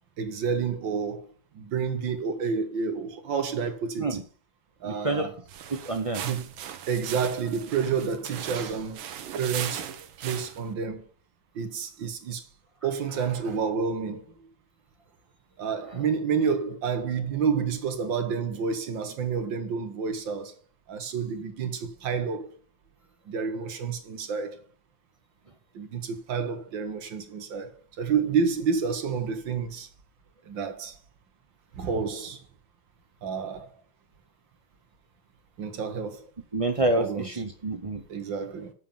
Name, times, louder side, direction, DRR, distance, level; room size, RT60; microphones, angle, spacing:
voice 1, 0.2-4.2 4.8-5.3 6.2-6.5 6.9-9.1 9.4-11.1 11.6-12.4 12.8-14.5 15.6-20.6 20.9-22.6 23.3-24.6 25.7-29.9 30.4-31.0 31.7-32.4 33.2-33.7 35.6-36.3 37.0-37.3 38.1-38.7, right 6 dB, 70° right, 1.9 m, -29 dB
voice 2, 4.8-5.3 5.7-6.2 15.9-16.0 36.5-38.0, right 2 dB, 55° right, 0.3 m, -28 dB
sound 1, 5.5-10.7, right 9 dB, 90° right, 1.7 m, -38 dB
7.4 x 6.6 x 7.0 m
omnidirectional pair, 2.1 m